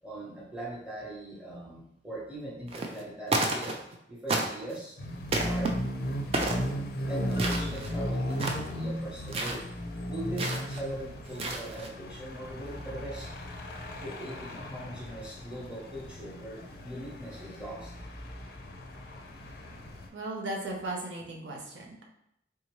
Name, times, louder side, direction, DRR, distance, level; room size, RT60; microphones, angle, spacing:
voice 1, 0.0-3.8 4.1-5.0 5.4-5.7 6.3-9.6 10.1-13.3 14.0-17.9, right 1 dB, 5° right, -5 dB, 0.9 m, -40 dB
sound 1, 2.7-3.0 3.3-3.9 4.3-4.8 5.3-5.7 6.3-6.7 7.3-7.9 8.3-8.7 9.3-9.6 10.4-10.8 11.3-11.9, right 2 dB, 30° right, 0.4 m, -31 dB
sound 2, 5.0-20.1, equal, 55° left, 0.5 m, -36 dB
voice 2, 20.1-22.1, right 2 dB, 70° right, -1 dB, 0.7 m, -36 dB
3.5 x 2.8 x 3.0 m, 0.77 s
head